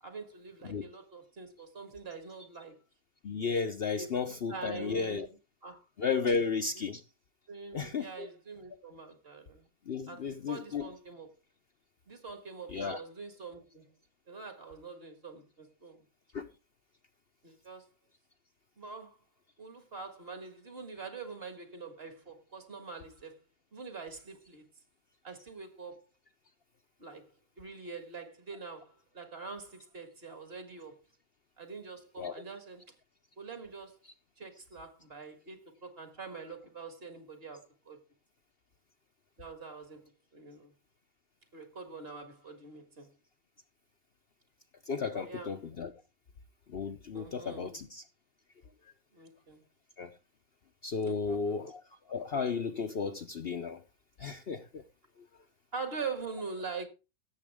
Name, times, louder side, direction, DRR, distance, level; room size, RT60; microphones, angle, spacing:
voice 1, 0.0-2.8 4.0-5.3 5.6-5.8 6.7-6.9 7.5-9.7 10.1-11.3 12.1-13.8 14.3-16.0 17.4-17.8 18.8-19.2 19.6-23.4 23.7-24.6 25.2-26.0 27.0-27.3 27.6-31.0 31.6-32.9 33.4-34.0 34.4-38.0 39.4-40.7 41.5-43.1 45.1-45.6 47.1-47.8 49.1-49.6 51.0-51.6 55.7-56.9, right 4 dB, 40° right, 2.0 m, -44 dB
voice 2, 3.2-5.3 6.0-7.0 7.7-8.3 9.9-10.9 12.7-13.0 16.3-16.5 32.2-32.4 44.9-45.9 46.7-48.0 50.0-50.1 50.8-51.8 52.1-53.8 54.2-54.8, left 5 dB, 50° left, 0.9 m, -33 dB
16.5 x 7.4 x 3.6 m
omnidirectional pair, 1.5 m